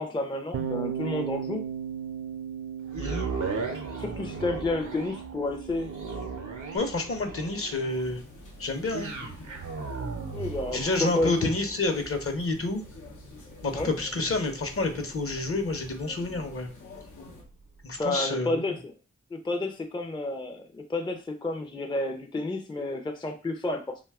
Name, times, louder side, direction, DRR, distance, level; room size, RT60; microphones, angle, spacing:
voice 1, 0.0-1.6 3.9-5.9 10.3-11.5 13.7-13.9 18.0-18.9 19.3-24.0, left 2 dB, 15° left, 5 dB, 0.4 m, -30 dB
Bass guitar, 0.5-6.8, right 8 dB, 50° right, 0.5 m, -37 dB
sound 1, 2.9-17.1 17.6-17.7, right 4 dB, 85° right, 0.7 m, -38 dB
voice 2, 6.7-8.2 8.6-9.1 10.7-12.8 13.6-16.7 17.8-18.8, left 3 dB, 50° left, 6 dB, 0.7 m, -29 dB
sound 2, 7.9-17.4, left 3 dB, 85° left, 0.7 m, -49 dB
2.6 x 2.2 x 3.4 m, 0.35 s
cardioid pair, 45°, 30 cm